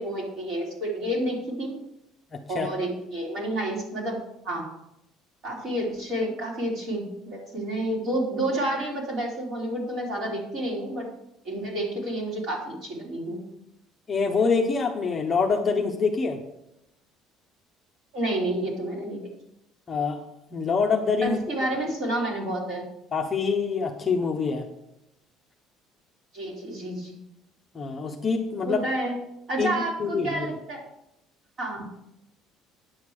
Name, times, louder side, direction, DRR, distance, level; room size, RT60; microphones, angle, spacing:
voice 1, 0.0-1.8 2.5-4.2 4.4-4.7 5.4-11.1 11.4-13.5 18.1-19.3 21.2-22.9 26.3-27.2 28.6-29.2 29.5-30.8 31.6-31.9, right 1 dB, 40° right, -2 dB, 3.4 m, -29 dB
voice 2, 2.3-2.7 14.1-16.4 19.9-20.2 20.5-21.7 23.1-24.7 27.7-28.8 29.6-29.7 30.0-30.5, left 5 dB, 20° left, 1 dB, 0.8 m, -25 dB
9.6 x 8.0 x 4.7 m, 0.83 s
cardioid pair, 170°, 0 cm